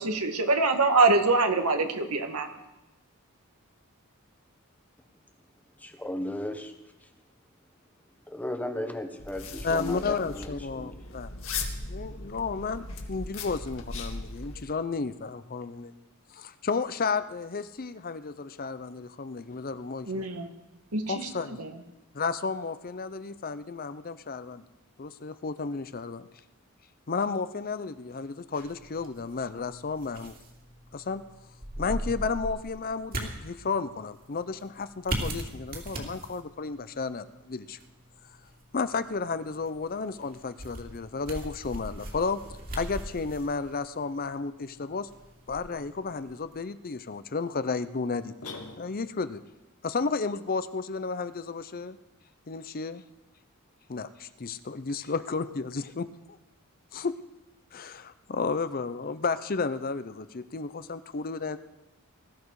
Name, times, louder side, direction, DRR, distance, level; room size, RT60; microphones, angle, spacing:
voice 1, 0.0-2.5 20.1-20.5 20.9-21.7, right 3 dB, 85° right, 6 dB, 1.7 m, -24 dB
voice 2, 5.8-6.7 7.0-7.1 8.3-10.9, left 1 dB, 5° left, 6 dB, 1.2 m, -35 dB
sound 1, 9.2-14.6, left 3 dB, 65° left, 1.9 m, -38 dB
voice 3, 9.6-11.3 11.9-15.9 16.3-20.3 21.1-21.6 22.1-24.6 25.0-26.3 27.1-30.3 30.9-31.2 31.8-37.8 38.7-42.4 42.7-45.1 45.5-48.3 48.8-49.4 49.8-52.0 52.5-53.0 53.9-56.4 56.9-57.2 57.7-61.6, left 4 dB, 40° left, 13 dB, 0.6 m, -32 dB
sound 2, 28.5-46.6, right 1 dB, 40° right, 2.8 m, -40 dB
sound 3, 48.4-49.3, left 3 dB, 85° left, 2.2 m, -42 dB
20.5 x 13.5 x 4.8 m, 0.98 s
head